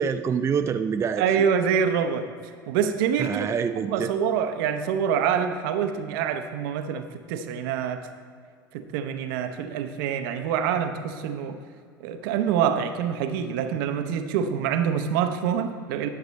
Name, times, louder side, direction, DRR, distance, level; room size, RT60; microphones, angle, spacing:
voice 1, 0.0-1.5 3.2-4.1, right 6 dB, 25° right, 9 dB, 0.4 m, -26 dB
voice 2, 1.2-2.3 2.7-3.5 3.9-8.1 8.7-11.6 12.0-16.1, right 8 dB, 65° right, 8 dB, 0.7 m, -26 dB
11.0 x 6.4 x 4.1 m, 2.1 s
hypercardioid pair, 80°, 12 cm